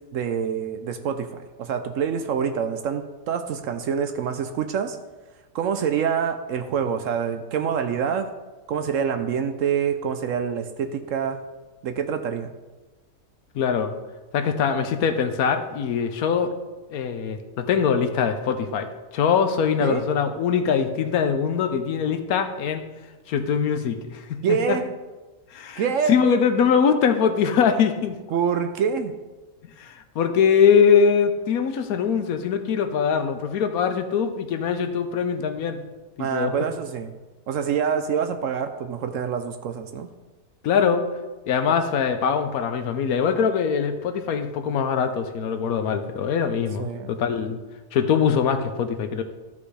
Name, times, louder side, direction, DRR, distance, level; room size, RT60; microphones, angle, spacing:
voice 1, 0.1-5.0 5.5-8.3 8.7-11.4 11.8-12.5 19.8-20.0 24.4-24.9 25.8-26.2 28.3-29.2 36.2-37.1 37.5-40.1 46.8-47.1, right 7 dB, 70° right, 8 dB, 0.9 m, -26 dB
voice 2, 13.5-13.9 14.3-16.5 16.9-18.9 19.1-22.8 23.3-24.2 24.5-24.8 25.5-28.2 29.8-35.8 36.2-36.5 40.6-41.0 41.5-47.6 47.9-49.2, left 7 dB, 75° left, 8 dB, 1.2 m, -22 dB
13.5 x 5.3 x 3.3 m, 1.2 s
omnidirectional pair, 1.6 m